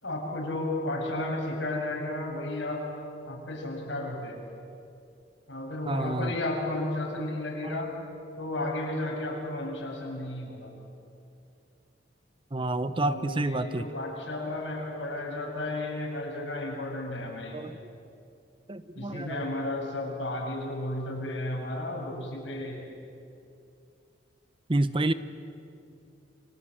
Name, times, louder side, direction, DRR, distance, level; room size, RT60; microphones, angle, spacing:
voice 1, 0.0-2.8 3.3-4.4 5.5-7.9 8.4-10.7 12.9-17.6 19.0-22.9, left 1 dB, 80° left, -1 dB, 7.1 m, -33 dB
voice 2, 5.9-6.3 7.6-7.8 12.5-13.8 17.5-17.8 18.7-19.5 24.7-25.1, right 2 dB, 30° right, 12 dB, 0.9 m, -29 dB
30.0 x 24.5 x 7.8 m, 2.6 s
head